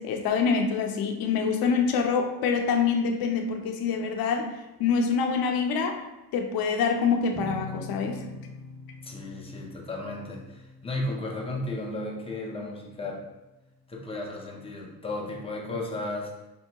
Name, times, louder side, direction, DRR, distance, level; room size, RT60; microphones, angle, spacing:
voice 1, 0.0-4.5 4.8-6.0 6.3-8.2, left 5 dB, 65° left, 4 dB, 0.5 m, -25 dB
sound 1, 7.3-12.9, left 2 dB, 5° right, 0.8 m, -44 dB
voice 2, 9.0-13.2 13.9-16.3, left 2 dB, 15° left, -1 dB, 0.5 m, -34 dB
4.3 x 2.7 x 2.2 m, 1.0 s
cardioid pair, 130°, 39 cm